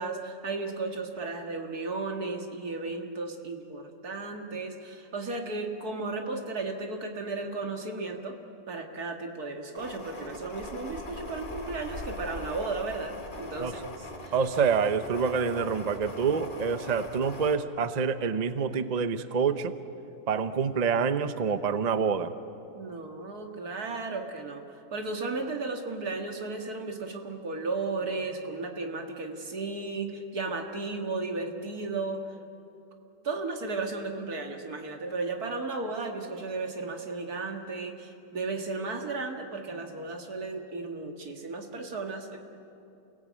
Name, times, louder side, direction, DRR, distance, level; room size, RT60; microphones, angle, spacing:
voice 1, 0.0-8.4 8.7-14.3 22.7-32.4 33.2-42.4, right 3 dB, 85° right, 3 dB, 2.5 m, -34 dB
sound 1, 9.7-17.6, left 2 dB, 35° left, 1.8 m, -41 dB
voice 2, 14.3-19.8 20.3-22.3, right 6 dB, 35° right, 11 dB, 0.7 m, -27 dB
28.5 x 17.5 x 8.7 m, 2.8 s
omnidirectional pair, 1.6 m